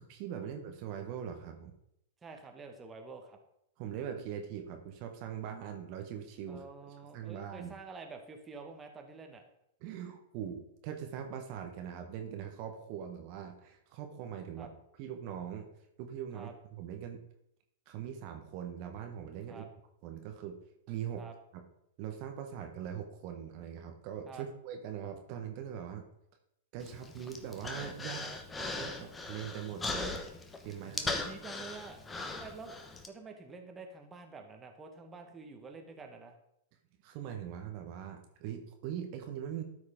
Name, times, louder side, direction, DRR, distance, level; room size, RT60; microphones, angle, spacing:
voice 1, 0.0-1.7 3.8-6.6 7.1-7.8 9.8-14.7 15.0-15.7 16.0-17.2 17.9-19.7 20.0-20.6 20.9-21.2 21.5-21.6 22.0-26.0 26.7-28.2 28.6-30.2 30.6-31.2 37.0-39.6, right 9 dB, 45° right, 4 dB, 1.2 m, -41 dB
voice 2, 2.2-3.4 6.5-9.4 14.6-14.7 16.3-16.5 19.5-19.7 21.2-21.3 24.3-24.5 28.1-28.4 30.9-32.8 33.1-36.3, right 4 dB, 20° right, 4 dB, 1.3 m, -48 dB
Human voice, 26.8-33.1, left 3 dB, 15° left, 1.0 m, -39 dB
13.0 x 4.8 x 3.7 m, 0.77 s
hypercardioid pair, 110°, 0 cm